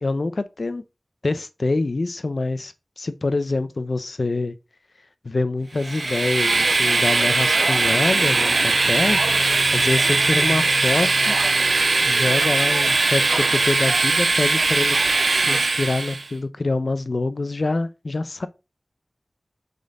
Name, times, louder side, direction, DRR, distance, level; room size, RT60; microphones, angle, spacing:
voice 1, 0.0-0.8 1.2-4.5 5.2-9.2 9.7-11.3 12.1-15.0 15.3-18.5, left 3 dB, 70° left, 0.7 m, -25 dB
sound 1, 5.7-12.3, left 1 dB, 35° left, 1.0 m, -37 dB
Train, 5.8-16.3, right 3 dB, 80° right, 0.4 m, -20 dB
6.5 x 5.4 x 3.8 m
wide cardioid pair, 45°, 0 cm